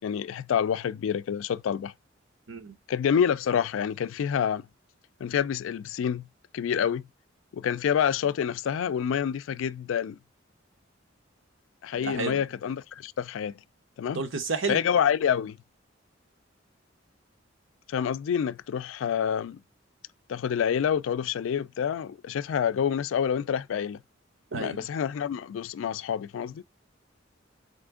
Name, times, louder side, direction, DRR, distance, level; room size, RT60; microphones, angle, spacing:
voice 1, 0.0-1.9 2.9-4.7 5.2-6.3 6.5-7.0 7.5-10.2 11.8-13.6 14.0-14.2 14.7-15.6 17.9-19.6 20.3-24.0 24.6-26.6, left 8 dB, 85° left, 0.3 m, -27 dB
voice 2, 12.0-12.4 14.1-14.8 24.5-24.8, right 3 dB, 80° right, 0.9 m, -31 dB
4.3 x 3.4 x 3.5 m
head